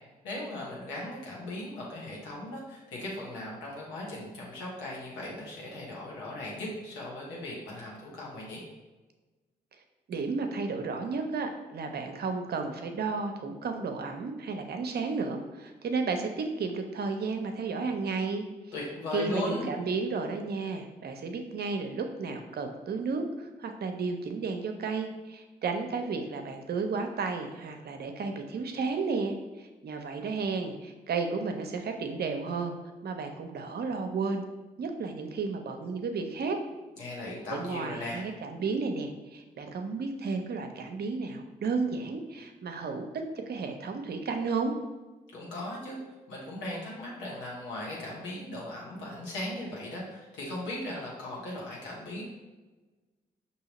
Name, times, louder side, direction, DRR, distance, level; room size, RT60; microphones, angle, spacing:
voice 1, 0.2-8.6 18.7-19.6 37.0-38.2 45.3-46.0 46.3-52.3, left 1 dB, 85° left, -4 dB, 1.1 m, -38 dB
voice 2, 10.1-18.4 19.1-32.7 33.0-34.4 34.8-36.6 37.5-43.1 43.5-44.7, right 4 dB, 60° right, 5 dB, 0.6 m, -33 dB
5.4 x 2.8 x 3.0 m, 1.2 s
supercardioid pair, 45°, 19 cm